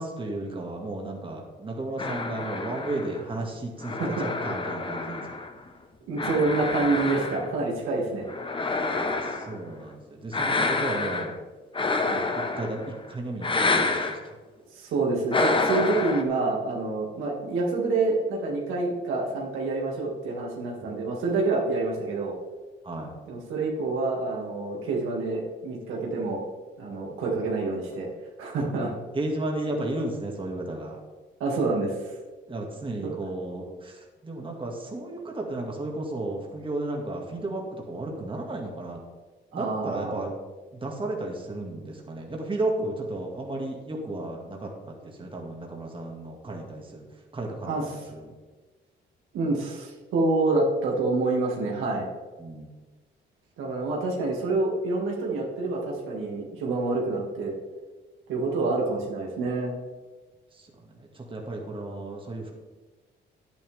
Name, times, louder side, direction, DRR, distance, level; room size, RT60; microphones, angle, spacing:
voice 1, 0.0-5.3 8.9-11.3 12.6-12.8 13.1-14.1 20.8-21.0 22.8-23.1 29.1-31.0 32.5-39.0 39.5-40.3 40.8-47.1 47.3-48.2 52.4-52.7 61.2-62.5, right 2 dB, 25° right, 0 dB, 2.1 m, -33 dB
sound 1, 2.0-5.7 6.2-7.7 8.3-9.6 10.3-11.4 11.7-12.9 13.4-14.2 15.3-16.2, left 3 dB, 25° left, 1.1 m, -28 dB
voice 2, 6.1-8.3 12.0-12.2 14.7-22.4 23.3-26.4 26.8-28.1 28.4-28.9 31.4-31.9 39.5-40.2 47.7-48.0 49.3-52.1 53.6-57.5 58.3-59.7, right 3 dB, 90° right, -2 dB, 2.4 m, -27 dB
10.0 x 9.7 x 3.6 m, 1.3 s
cardioid pair, 90°, 20 cm